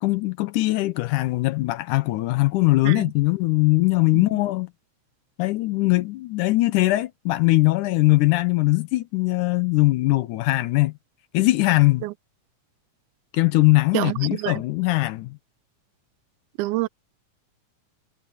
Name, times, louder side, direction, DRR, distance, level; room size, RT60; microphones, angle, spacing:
voice 1, 0.0-4.7 5.4-10.9 11.3-12.0 13.3-15.4, left 20 dB, 85° left, 2.2 m, -21 dB
voice 2, 13.9-14.5 16.6-16.9, right 19 dB, 80° right, 2.0 m, -27 dB
omnidirectional pair, 3.6 m